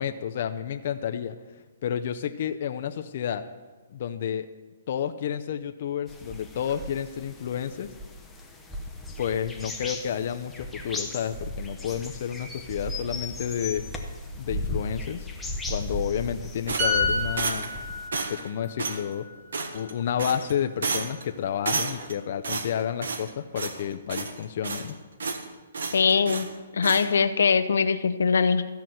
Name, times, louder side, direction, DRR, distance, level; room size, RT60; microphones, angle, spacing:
voice 1, 0.0-1.4 1.8-3.4 3.9-4.5 4.9-7.9 9.2-13.8 14.4-15.3 15.7-17.7 18.1-19.3 19.7-24.9, left 9 dB, 40° left, 6 dB, 0.5 m, -30 dB
sound 1, 6.1-18.1, left 1 dB, 5° left, 0.7 m, -36 dB
sound 2, 16.7-17.8 18.1-18.5 18.8-19.0 19.5-19.9 20.2-20.5 20.8-21.2 21.6-22.1 22.4-23.3 23.5-23.8 24.1-24.9 25.2-25.4 25.7-26.5 26.8-27.1, right 4 dB, 80° right, 1.4 m, -31 dB
sound 3, 16.8-20.4 20.7-20.9, left 2 dB, 30° right, 3.3 m, -31 dB
voice 2, 25.9-26.5 26.7-28.7, left 5 dB, 80° left, 11 dB, 0.8 m, -22 dB
14.0 x 5.8 x 7.7 m, 1.3 s
hypercardioid pair, 170°, 0 cm